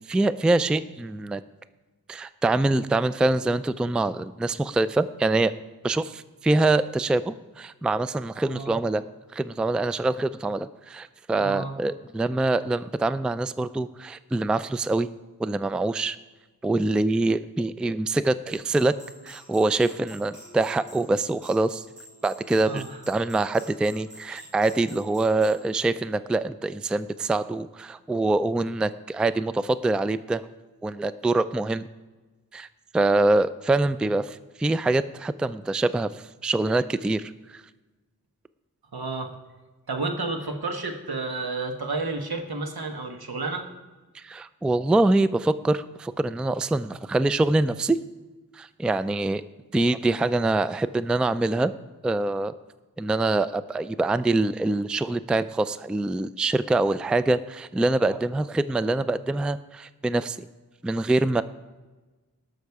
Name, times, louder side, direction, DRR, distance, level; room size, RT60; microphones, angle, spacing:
voice 1, 0.1-1.4 2.1-5.5 5.8-9.0 9.3-15.1 15.4-16.2 16.6-18.9 19.2-21.8 22.2-30.4 30.8-31.9 32.5-32.7 32.9-37.6 44.1-48.0 48.5-49.4 49.7-51.7 52.0-52.5 53.0-60.5 60.8-61.4, right 2 dB, 5° right, 15 dB, 0.3 m, -24 dB
voice 2, 11.4-11.7 22.6-23.0 24.4-24.5 38.9-39.3 39.9-43.7, right 3 dB, 85° right, 4 dB, 1.4 m, -31 dB
sound 1, 18.5-25.6, equal, 55° right, 3.3 m, -48 dB
19.0 x 6.4 x 4.8 m, 1.2 s
wide cardioid pair, 70°, 36 cm